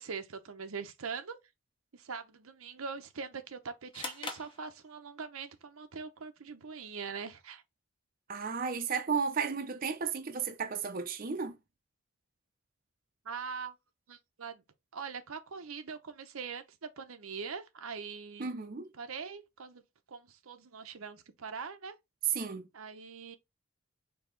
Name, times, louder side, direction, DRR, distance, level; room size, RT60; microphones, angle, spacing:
voice 1, 0.0-1.4 1.9-7.6 13.2-13.7 14.1-14.6 14.9-18.5 18.9-19.8 20.1-21.9 22.7-23.4, right 5 dB, 90° right, 0.7 m, -42 dB
sound 1, 3.9-5.3, left 3 dB, 25° left, 0.9 m, -43 dB
voice 2, 8.3-11.6 18.4-18.9 22.3-22.7, right 5 dB, 40° right, 0.5 m, -34 dB
4.7 x 2.8 x 3.7 m
head